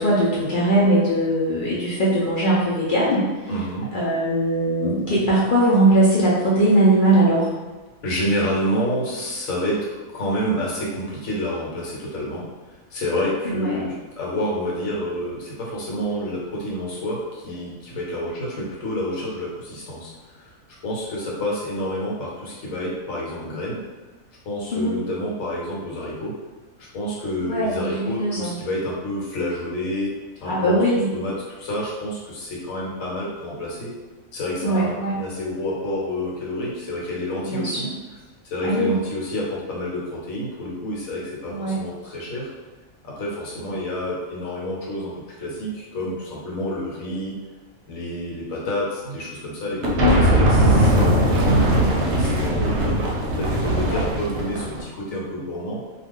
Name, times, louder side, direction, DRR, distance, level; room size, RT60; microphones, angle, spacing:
voice 1, 0.0-3.2 3.9-7.5 13.5-13.8 24.7-25.0 27.4-28.5 30.5-31.0 34.6-35.1 37.5-37.8 38.6-38.9 41.5-41.8 50.0-50.6 53.8-54.0, right 1 dB, 55° left, -7 dB, 0.6 m, -20 dB
voice 2, 3.5-3.9 8.0-12.4 12.9-20.5 20.8-23.8 24.4-26.4 26.8-30.1 30.4-33.9 34.3-37.9 38.4-42.5 43.0-47.4 47.9-53.0 53.4-55.8, left 1 dB, 75° left, -4 dB, 1.2 m, -29 dB
sound 1, 49.8-54.8, right 1 dB, 65° right, 0.8 m, -19 dB
2.3 x 2.3 x 3.5 m, 1.3 s
omnidirectional pair, 1.4 m